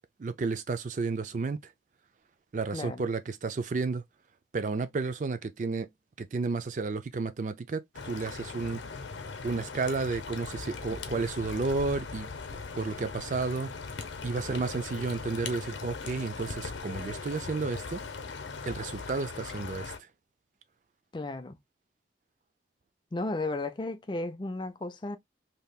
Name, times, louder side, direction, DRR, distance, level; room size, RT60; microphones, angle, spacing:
voice 1, 0.2-1.6 2.5-4.0 4.5-5.9 6.2-8.8 9.4-12.3 12.7-13.7 14.2-18.0 18.7-19.9, right 4 dB, 40° right, 0.4 m, -32 dB
voice 2, 2.7-3.1 21.1-21.6 23.1-25.2, left 2 dB, 25° left, 0.4 m, -34 dB
sound 1, 7.9-20.0, left 4 dB, 85° left, 0.6 m, -39 dB
3.3 x 2.8 x 2.2 m
head